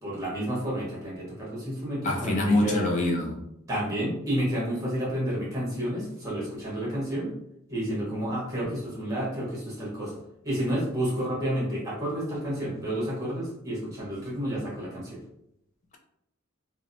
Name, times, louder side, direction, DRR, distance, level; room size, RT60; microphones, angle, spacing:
voice 1, 0.0-2.9 3.7-7.3 7.7-10.2 10.4-15.2, equal, 15° right, -6 dB, 1.0 m, -30 dB
voice 2, 2.0-3.4, left 2 dB, 35° left, 1 dB, 0.4 m, -25 dB
2.7 x 2.1 x 2.5 m, 0.80 s
head